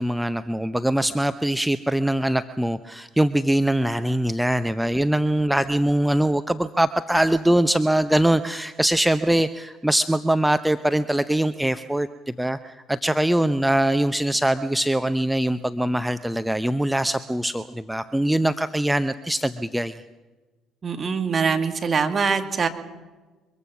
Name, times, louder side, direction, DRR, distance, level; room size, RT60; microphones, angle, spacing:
voice 1, 0.0-20.0, right 1 dB, 5° right, 10 dB, 0.7 m, -22 dB
voice 2, 20.8-22.7, right 5 dB, 35° right, 5 dB, 2.3 m, -23 dB
24.0 x 22.0 x 6.1 m, 1.2 s
figure-of-eight pair, 50°, 0 cm